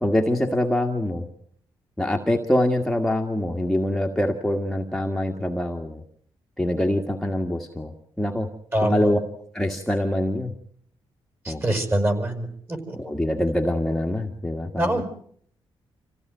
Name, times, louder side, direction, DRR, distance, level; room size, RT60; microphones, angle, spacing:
voice 1, 0.0-1.3 2.0-6.0 6.6-8.5 8.8-9.2 9.5-10.5 11.5-11.6 12.9-15.0, left 1 dB, 5° left, 1 dB, 1.9 m, -24 dB
voice 2, 8.7-9.1 11.4-13.0 14.8-15.0, right 1 dB, 25° right, 8 dB, 5.5 m, -25 dB
27.5 x 16.0 x 9.4 m, 0.63 s
wide cardioid pair, 145°, 9 cm